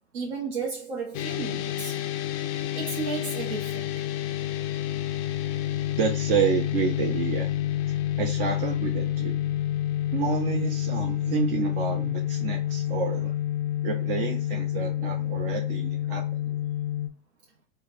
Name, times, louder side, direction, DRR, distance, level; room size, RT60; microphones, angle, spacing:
voice 1, 0.1-2.0 2.5-3.9, right 5 dB, 70° right, 1.1 m, -34 dB
sound 1, 1.1-17.1, left 12 dB, 30° left, 0.4 m, -29 dB
voice 2, 6.0-7.5 7.9-9.4 10.1-13.4 13.8-16.5, right 7 dB, 50° right, 0.8 m, -29 dB
3.2 x 2.2 x 4.1 m
hypercardioid pair, 120°, 34 cm